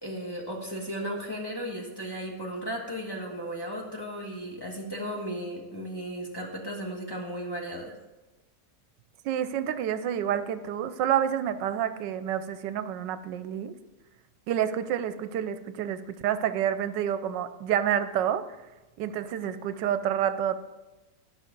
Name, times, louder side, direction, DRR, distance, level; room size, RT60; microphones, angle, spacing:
voice 1, 0.0-7.9, equal, 15° left, -3 dB, 1.4 m, -35 dB
voice 2, 9.2-13.7 14.5-18.4 19.0-20.6, right 10 dB, 85° right, 12 dB, 1.3 m, -28 dB
11.5 x 5.9 x 5.2 m, 1.1 s
omnidirectional pair, 1.9 m